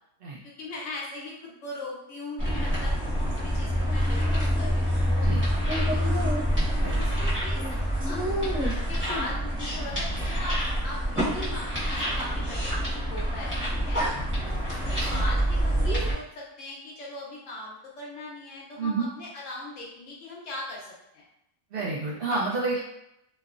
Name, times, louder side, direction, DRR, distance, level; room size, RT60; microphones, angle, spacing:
voice 1, 0.4-3.0 3.2-6.3 6.8-7.6 8.0-10.6 10.8-14.0 14.4-21.2 22.7-22.8, left 2 dB, 70° left, -4 dB, 1.1 m, -40 dB
sound 1, 2.4-16.1, equal, 10° right, 1.0 m, -26 dB
voice 2, 6.8-7.3 15.0-15.2 18.8-19.1 21.7-22.8, right 3 dB, 60° right, -5 dB, 0.6 m, -30 dB
3.0 x 2.0 x 2.4 m, 0.80 s
omnidirectional pair, 1.4 m